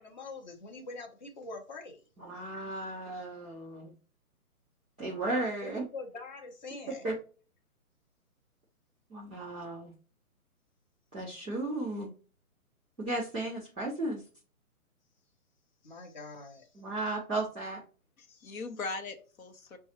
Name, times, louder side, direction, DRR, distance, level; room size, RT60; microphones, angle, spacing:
voice 1, 0.0-2.0 5.6-7.1 15.8-16.8, left 3 dB, 30° left, 0.7 m, -44 dB
voice 2, 2.2-3.9 5.0-5.8 7.0-7.1 9.1-9.9 11.1-12.1 13.0-14.2 16.7-17.8, right 2 dB, 5° right, 0.5 m, -35 dB
voice 3, 18.2-19.8, left 3 dB, 65° left, 0.9 m, -40 dB
6.2 x 2.3 x 2.9 m
hypercardioid pair, 155°, 45 cm